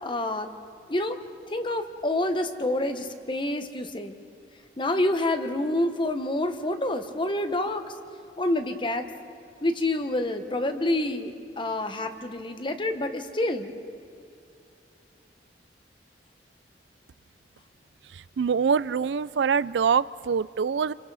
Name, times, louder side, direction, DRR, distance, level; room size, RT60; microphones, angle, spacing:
voice 1, 0.0-0.5 0.9-1.2 1.5-4.2 4.8-7.8 8.4-9.1 9.6-13.7, left 1 dB, 30° left, 8 dB, 1.2 m, -27 dB
voice 2, 18.4-20.9, right 6 dB, 90° right, 18 dB, 0.4 m, -24 dB
29.0 x 24.5 x 4.1 m, 2.6 s
head